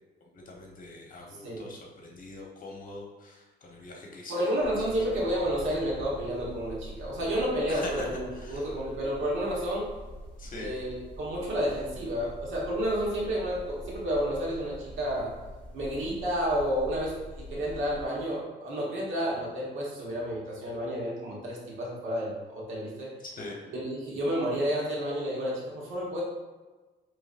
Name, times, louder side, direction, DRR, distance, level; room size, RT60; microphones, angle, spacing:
voice 1, 0.3-4.5 7.7-8.0 8.3-8.7 10.4-10.7 23.2-23.6, left 2 dB, 45° left, -1 dB, 1.0 m, -42 dB
voice 2, 4.3-9.9 10.6-15.3 15.7-23.1 23.7-26.2, equal, 80° right, -4 dB, 1.3 m, -30 dB
sound 1, 4.6-18.1, equal, 5° left, 1.2 m, -45 dB
4.8 x 3.0 x 2.5 m, 1.3 s
cardioid pair, 90°, 20 cm